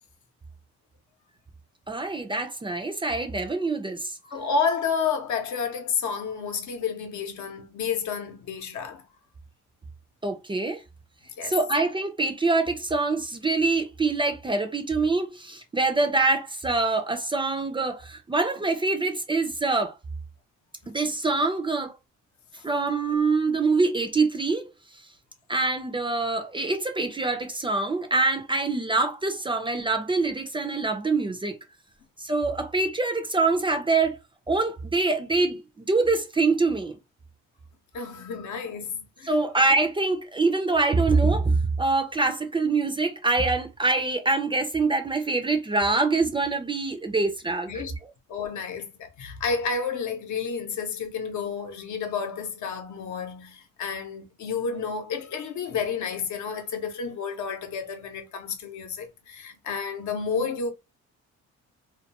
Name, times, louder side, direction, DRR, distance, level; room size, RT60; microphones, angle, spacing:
voice 1, 1.9-4.2 10.2-10.8 11.4-19.9 20.9-21.9 22.6-24.7 25.5-31.6 32.2-34.2 34.5-37.0 39.3-47.7, right 3 dB, 15° right, 0.4 m, -25 dB
voice 2, 4.2-9.0 11.4-11.6 37.9-39.3 47.7-48.0 48.3-60.7, left 5 dB, 70° left, 0.7 m, -30 dB
2.3 x 2.2 x 2.8 m
cardioid pair, 90°, 30 cm